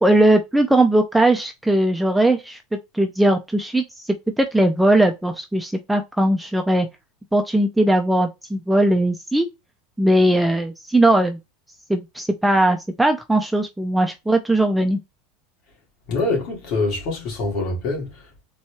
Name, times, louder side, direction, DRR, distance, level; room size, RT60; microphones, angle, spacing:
voice 1, 0.0-2.6 2.9-3.8 4.4-6.9 7.3-9.5 10.0-11.4 11.9-15.0, right 1 dB, 5° right, 0.4 m, -19 dB
voice 2, 16.1-18.4, left 2 dB, 50° left, 1.9 m, -25 dB
4.1 x 2.3 x 3.0 m
supercardioid pair, 145°, 0 cm